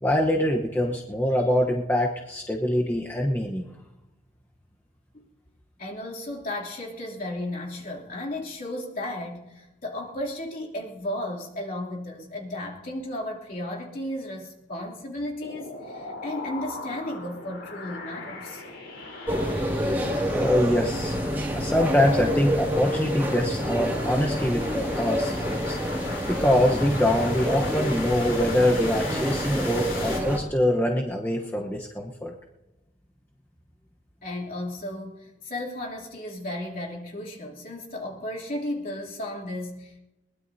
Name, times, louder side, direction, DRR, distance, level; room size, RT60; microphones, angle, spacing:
voice 1, 0.0-3.6 20.3-21.2 21.5-25.8 26.3-32.3, left 1 dB, 10° left, -1 dB, 1.0 m, -24 dB
voice 2, 5.8-18.6 34.2-40.0, left 1 dB, 50° left, -3 dB, 3.1 m, -34 dB
sound 1, 15.4-30.2, left 3 dB, 80° left, 4.0 m, -38 dB
sound 2, 19.3-30.4, equal, 10° right, 2.3 m, -28 dB
21.5 x 20.0 x 2.8 m, 1.0 s
head